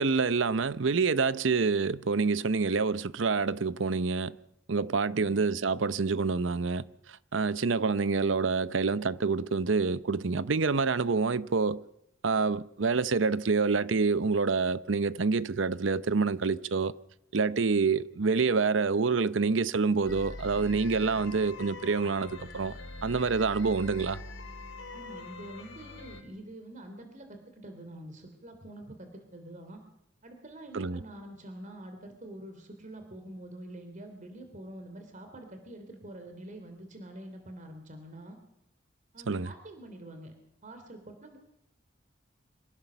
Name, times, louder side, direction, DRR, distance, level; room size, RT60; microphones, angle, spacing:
voice 1, 0.0-4.4 4.7-6.8 7.3-11.8 12.2-16.9 17.3-22.7 23.0-24.2 30.7-31.0 39.3-39.5, right 4 dB, 75° right, 0.7 m, -27 dB
sound 1, 20.1-26.2, left 2 dB, 80° left, 3.5 m, -43 dB
voice 2, 24.9-29.8 30.2-38.4 39.1-41.4, right 1 dB, 40° right, 3.1 m, -46 dB
25.5 x 17.0 x 6.9 m
head